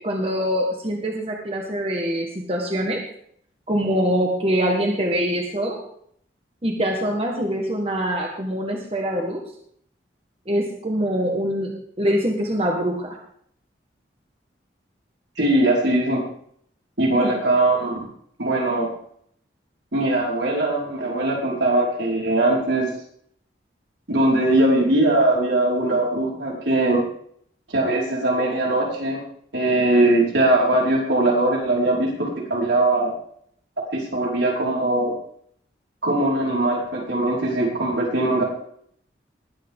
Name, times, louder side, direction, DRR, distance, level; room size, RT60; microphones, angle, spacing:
voice 1, 0.0-3.0 3.7-5.8 6.6-9.4 10.5-11.7 12.0-13.2 17.1-17.4, equal, 30° right, 0 dB, 1.7 m, -24 dB
voice 2, 15.4-16.2 17.0-18.0 18.4-18.9 19.9-22.9 24.1-27.0 27.7-29.2 29.5-33.1 33.9-35.1 36.0-38.4, right 2 dB, 85° right, -3 dB, 5.0 m, -20 dB
20.5 x 8.9 x 3.8 m, 0.65 s
head